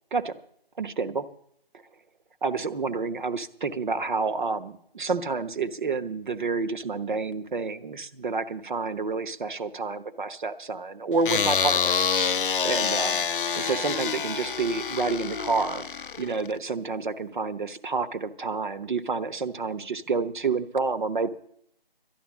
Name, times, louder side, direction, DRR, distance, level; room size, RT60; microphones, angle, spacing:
voice 1, 0.8-1.3 2.4-12.1 12.4-13.2 13.5-15.9 16.2-21.3, right 4 dB, 55° right, 11 dB, 1.1 m, -29 dB
sound 1, 11.2-16.6, left 6 dB, 60° left, 0.5 m, -27 dB
12.0 x 11.0 x 7.2 m, 0.68 s
figure-of-eight pair, 160°, 30 cm